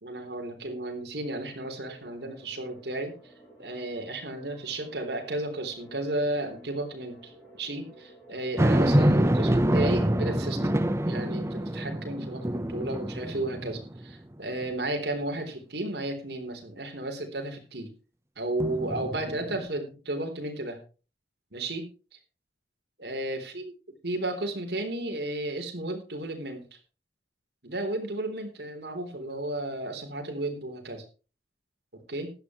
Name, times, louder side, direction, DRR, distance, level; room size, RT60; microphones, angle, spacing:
voice 1, 0.0-3.3 3.6-17.9 18.4-20.8 21.5-21.9 23.0-23.7 24.0-26.7 27.6-31.0 31.9-32.3, right 1 dB, 65° right, 4 dB, 3.7 m, -33 dB
sound 1, 1.1-10.1, right 2 dB, 15° left, 7.9 m, -53 dB
sound 2, 8.6-14.1 14.6-14.7 18.6-19.7, right 1 dB, 15° right, 0.8 m, -26 dB
16.0 x 12.0 x 3.1 m, 0.35 s
head